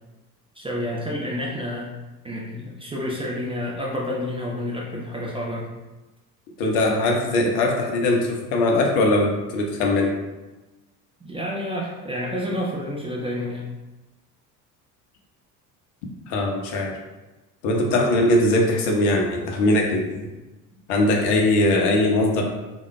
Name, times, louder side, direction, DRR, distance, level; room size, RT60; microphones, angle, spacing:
voice 1, 0.5-1.9 2.2-5.7 11.2-13.7, left 1 dB, 10° right, -3 dB, 0.5 m, -29 dB
voice 2, 6.6-10.2 16.3-16.9 17.6-20.3 20.9-22.4, left 1 dB, 55° left, 1 dB, 0.8 m, -21 dB
3.8 x 3.5 x 2.2 m, 1.1 s
figure-of-eight pair, 60°, 47 cm